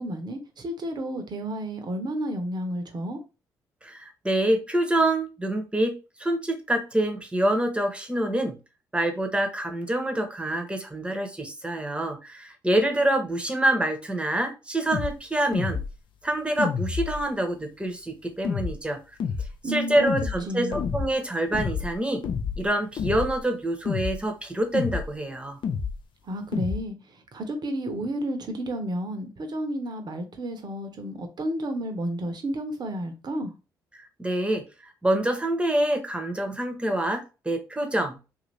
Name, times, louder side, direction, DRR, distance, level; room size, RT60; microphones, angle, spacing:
voice 1, 0.0-3.2 19.6-20.1 20.5-20.8 26.3-26.9 27.3-33.5, right 1 dB, 45° right, 0.9 m, -31 dB
voice 2, 3.8-8.6 8.9-15.8 16.2-19.0 19.6-22.2 22.6-25.6 34.2-38.4, right 1 dB, 10° right, 1.0 m, -26 dB
sound 1, 14.9-15.1 15.5-15.9 16.6-17.3 18.4-18.8 19.2-19.5 20.1-20.4 20.7-21.1 21.5-22.0 22.2-22.7 23.0-23.4 23.8-24.2 24.7-25.1 25.6-26.0 26.5-26.8, left 6 dB, 55° left, 0.6 m, -29 dB
2.7 x 2.7 x 3.2 m
hypercardioid pair, 45°, 10 cm